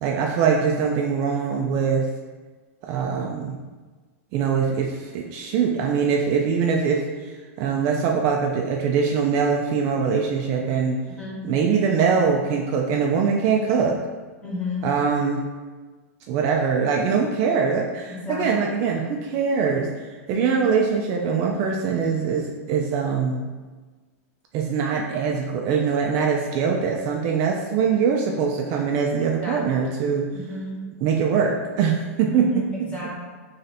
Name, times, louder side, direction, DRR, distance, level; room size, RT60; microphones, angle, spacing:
voice 1, 0.0-2.1 2.9-3.6 4.3-11.0 11.4-14.0 14.8-15.4 16.3-19.9 20.3-23.5 24.5-30.3 31.0-32.5 32.8-33.1, right 6 dB, 40° right, 0 dB, 0.3 m, -23 dB
voice 2, 14.4-14.8 18.1-18.4 20.3-20.6 29.4-29.6 30.3-30.7 32.3-33.2, left 2 dB, 15° left, -5 dB, 1.1 m, -32 dB
3.2 x 2.6 x 4.1 m, 1.3 s
supercardioid pair, 145°, 8 cm